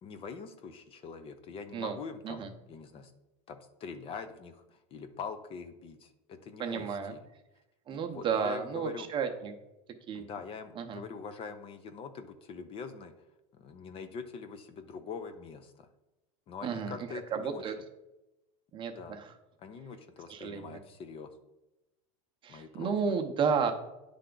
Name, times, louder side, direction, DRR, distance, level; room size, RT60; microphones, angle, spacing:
voice 1, 0.0-3.1 3.5-7.2 7.9-9.1 10.1-13.1 13.5-15.9 16.5-17.6 19.0-19.2 19.6-21.4 22.5-23.1, left 5 dB, 35° left, 8 dB, 0.6 m, -44 dB
voice 2, 6.6-7.2 7.9-9.6 10.1-10.3 10.8-11.0 16.6-16.9 17.3-17.7 18.7-19.2 20.3-20.8 22.4-23.7, right 6 dB, 30° right, 5 dB, 0.7 m, -32 dB
9.9 x 3.4 x 3.8 m, 0.96 s
supercardioid pair, 130°, 16 cm